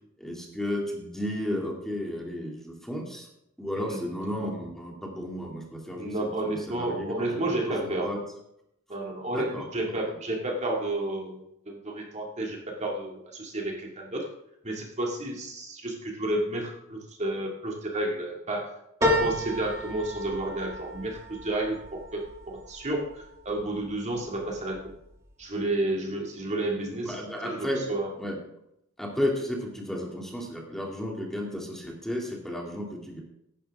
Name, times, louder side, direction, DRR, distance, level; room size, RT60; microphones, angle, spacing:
voice 1, 0.2-3.3 3.6-8.2 9.3-9.7 10.1-10.2 27.0-27.8 28.2-28.4 29.0-33.2, left 1 dB, ahead, -1 dB, 2.6 m, -33 dB
voice 2, 6.0-8.1 8.9-14.3 14.6-18.7 19.0-24.9 25.4-27.2 27.4-28.1, right 1 dB, 35° right, 0 dB, 2.3 m, -31 dB
sound 1, 19.0-23.8 24.3-25.0 25.3-25.4, left 1 dB, 15° right, 2.7 m, -32 dB
16.0 x 11.5 x 3.6 m, 0.79 s
head